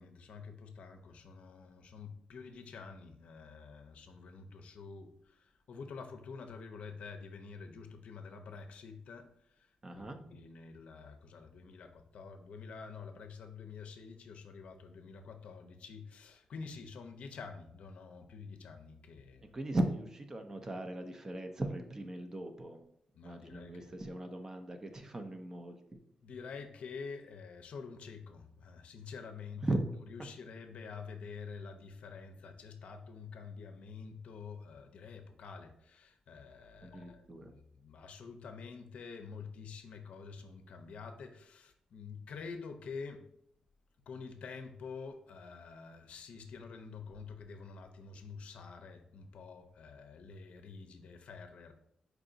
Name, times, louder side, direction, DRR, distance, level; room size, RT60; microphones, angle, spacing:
voice 1, 0.0-19.5 23.2-23.9 26.2-29.7 30.1-43.3 44.1-51.7, left 5 dB, 65° left, 6 dB, 0.5 m, -48 dB
voice 2, 9.8-10.2 19.5-22.8 23.2-25.8 29.6-29.8 36.8-37.5, right 1 dB, 25° right, 6 dB, 0.5 m, -38 dB
4.7 x 2.5 x 3.8 m, 0.73 s
wide cardioid pair, 125°, 2 cm